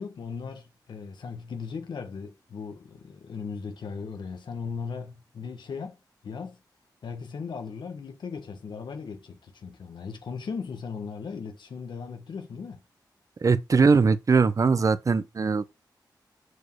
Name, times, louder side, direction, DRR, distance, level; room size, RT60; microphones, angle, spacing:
voice 1, 0.0-6.0 6.2-6.6 7.0-12.8, left 5 dB, 90° left, 1.3 m, -37 dB
voice 2, 13.4-15.8, right 4 dB, 45° right, 0.7 m, -21 dB
6.4 x 5.1 x 4.6 m
wide cardioid pair, 115°, 8 cm